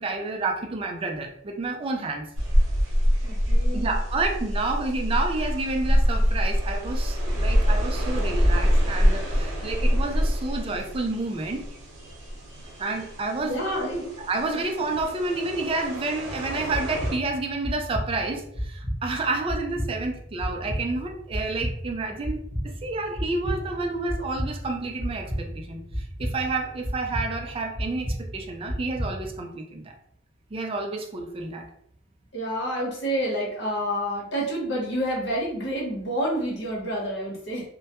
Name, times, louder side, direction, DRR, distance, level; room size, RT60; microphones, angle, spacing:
voice 1, 0.0-2.3 3.7-11.6 12.8-13.6 13.9-29.9 30.5-31.7, right 3 dB, 30° right, 3 dB, 0.3 m, -30 dB
sound 1, 2.4-17.2, equal, 80° right, 0.7 m, -25 dB
voice 2, 3.2-4.0 12.6-12.7 13.4-14.1 14.5-14.6 32.3-37.7, equal, 60° left, -3 dB, 0.9 m, -29 dB
sound 2, 16.3-29.4, equal, 25° left, 0.6 m, -33 dB
2.1 x 2.1 x 2.8 m, 0.68 s
head